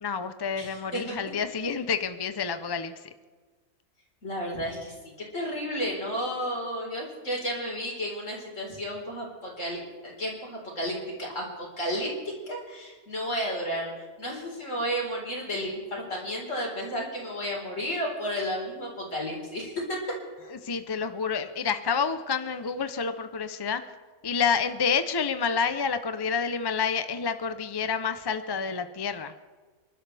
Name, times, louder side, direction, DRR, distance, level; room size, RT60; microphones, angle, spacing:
voice 1, 0.0-2.9 20.6-23.8 24.2-29.3, left 6 dB, 30° left, 10 dB, 0.4 m, -28 dB
voice 2, 0.6-1.1 4.2-12.1 12.5-13.9 14.2-20.0 20.4-20.5, equal, 60° left, -2 dB, 4.7 m, -32 dB
28.5 x 12.0 x 3.4 m, 1.4 s
omnidirectional pair, 1.5 m